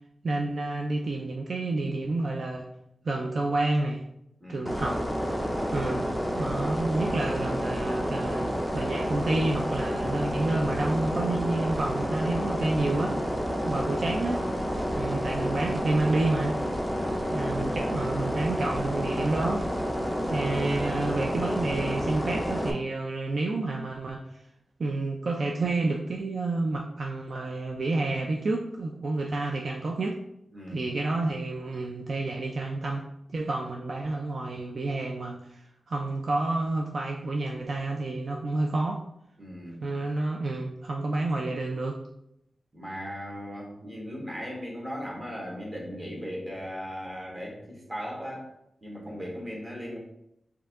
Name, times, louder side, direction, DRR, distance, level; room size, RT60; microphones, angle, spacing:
voice 1, 0.2-2.7 3.0-4.0 4.5-5.0 5.7-6.1 6.3-13.2 13.6-14.4 14.9-16.5 17.3-19.6 20.3-24.4 24.8-30.2 30.7-33.0 33.3-39.0 39.8-42.0, right 2 dB, 60° right, 1 dB, 0.4 m, -29 dB
sound 1, 4.7-22.7, equal, 10° right, 0.6 m, -29 dB
voice 2, 16.9-17.3 30.5-30.9 39.4-39.8 42.7-48.5 48.8-50.0, equal, 25° right, -3 dB, 1.4 m, -38 dB
4.5 x 2.7 x 3.5 m, 0.80 s
wide cardioid pair, 110°, 0 cm